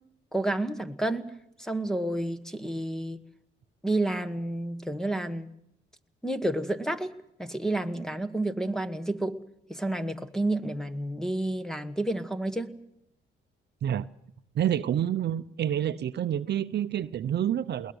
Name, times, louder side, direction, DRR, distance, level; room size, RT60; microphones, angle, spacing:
voice 1, 0.3-1.3 1.6-3.2 3.8-5.5 6.2-9.4 9.7-12.7, right 1 dB, 5° left, 1.4 m, -30 dB
voice 2, 14.5-17.9, right 10 dB, 60° right, 0.7 m, -28 dB
21.0 x 19.0 x 8.0 m
cardioid pair, 90°, 20 cm